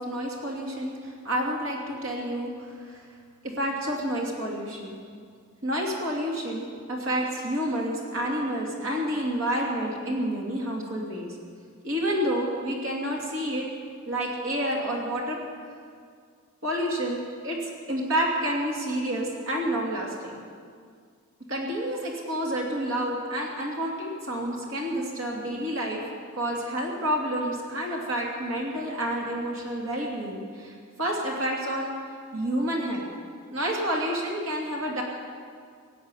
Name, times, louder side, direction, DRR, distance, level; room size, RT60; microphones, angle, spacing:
voice 1, 0.0-3.0 3.4-5.0 5.6-11.4 11.8-13.7 14.1-15.4 16.6-20.4 21.5-26.0 26.3-31.9 32.3-33.1 33.5-35.0, equal, 65° right, -1 dB, 2.8 m, -29 dB
17.0 x 8.6 x 9.8 m, 2.1 s
head